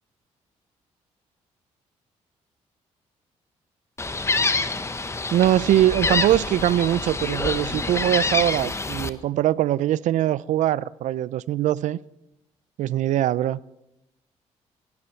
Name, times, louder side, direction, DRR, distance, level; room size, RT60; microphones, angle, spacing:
Gull seagull, 4.0-9.1, left 3 dB, 20° left, 1.0 m, -26 dB
voice 1, 5.3-12.0 12.8-13.6, right 13 dB, 75° right, 0.4 m, -22 dB
17.5 x 15.5 x 4.5 m
cardioid pair, 70°, 13 cm